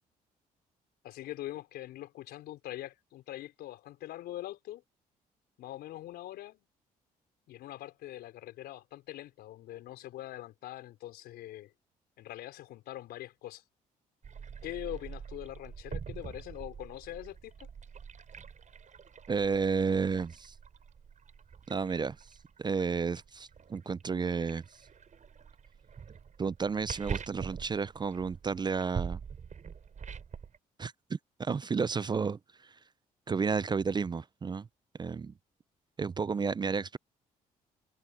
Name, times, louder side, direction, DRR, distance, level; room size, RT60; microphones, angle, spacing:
voice 1, 1.0-4.8 5.6-6.6 7.5-11.7 12.2-13.6 14.6-17.7, left 14 dB, 80° left, 4.6 m, -43 dB
sound 1, 14.2-30.6, right 6 dB, 50° right, 6.2 m, -44 dB
voice 2, 19.3-20.5 21.7-22.2 22.6-24.6 26.4-29.2 30.8-32.8 33.3-34.7 35.0-35.3 36.0-37.0, right 5 dB, 25° right, 0.4 m, -32 dB
supercardioid pair, 60°, 16 cm